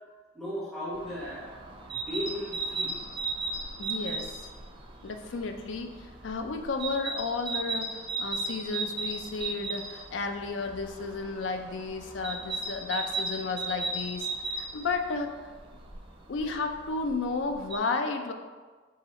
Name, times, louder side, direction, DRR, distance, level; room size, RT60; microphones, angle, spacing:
voice 1, 0.3-1.6 1.9-3.0, left 1 dB, ahead, -9 dB, 1.3 m, -36 dB
sound 1, 0.9-17.8, right 3 dB, 30° right, 0.5 m, -37 dB
voice 2, 3.8-4.3 5.0-5.9 6.2-15.5 16.3-18.3, left 4 dB, 75° left, 5 dB, 0.4 m, -33 dB
3.9 x 2.9 x 4.1 m, 1.4 s
head